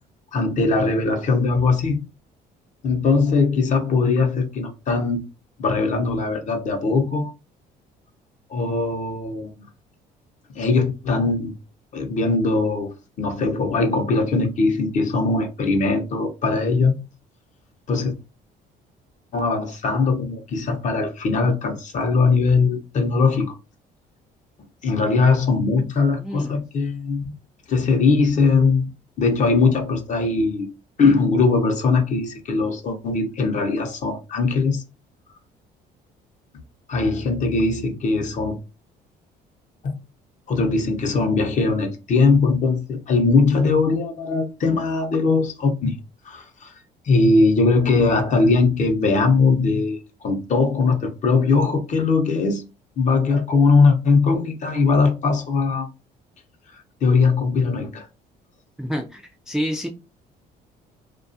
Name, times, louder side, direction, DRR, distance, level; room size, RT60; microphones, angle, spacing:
voice 1, 0.3-2.0 2.8-5.2 5.6-7.3 8.5-9.7 10.5-11.5 11.9-17.0 17.9-18.1 19.3-23.6 24.8-27.3 27.7-28.8 29.2-30.7 31.0-34.8 36.9-38.6 39.8-39.9 40.5-46.0 46.3-46.7 47.0-50.0 50.2-52.7 53.0-55.9 57.0-58.0, left 4 dB, 45° left, 0.7 m, -20 dB
voice 2, 26.1-26.6 58.8-59.9, equal, 5° right, 0.3 m, -29 dB
2.3 x 2.3 x 2.6 m
cardioid pair, 110°, 17 cm